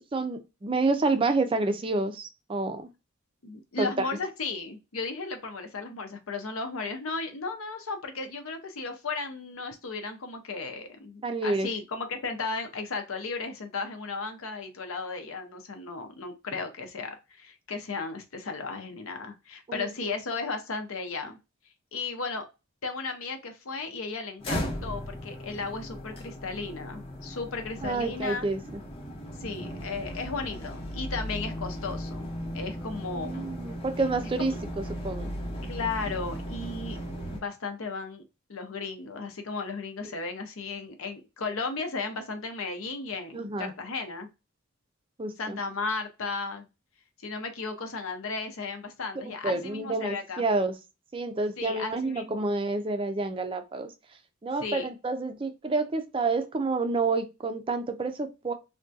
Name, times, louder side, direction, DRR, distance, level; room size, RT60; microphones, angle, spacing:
voice 1, 0.1-2.9 3.8-4.1 11.2-11.7 19.7-19.9 27.8-28.8 33.1-35.3 43.3-43.7 45.2-45.6 49.2-50.7 51.1-53.9 54.4-58.5, right 3 dB, 25° right, 8 dB, 0.4 m, -29 dB
voice 2, 3.4-21.4 21.9-22.5 22.8-28.5 29.4-32.3 32.5-33.5 34.4-34.6 35.6-37.0 37.3-38.2 38.5-44.3 45.4-46.7 47.2-50.5 51.6-52.5 54.6-54.9, left 4 dB, 75° left, 6 dB, 0.7 m, -35 dB
sound 1, 24.4-37.4, equal, 25° left, 0.7 m, -37 dB
3.5 x 2.2 x 2.6 m, 0.26 s
head